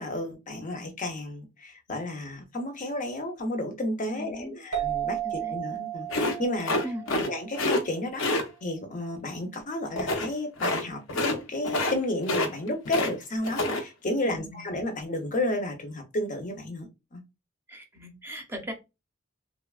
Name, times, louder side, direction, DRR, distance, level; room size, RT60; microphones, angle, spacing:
voice 1, 0.0-6.8 7.1-17.2, left 1 dB, 40° left, 0.7 m, -32 dB
voice 2, 4.0-4.6 5.2-5.6 6.8-7.3 14.2-14.6 17.7-18.7, equal, 10° right, 0.7 m, -39 dB
sound 1, 4.7-8.0, right 11 dB, 75° right, 0.7 m, -34 dB
sound 2, 6.1-7.3 7.5-7.8 8.2-8.4 10.0-10.3 10.6-10.8 11.1-11.4 11.6-12.0 12.2-13.1 13.4-13.8, left 2 dB, 75° left, 0.6 m, -27 dB
3.2 x 2.2 x 2.3 m
head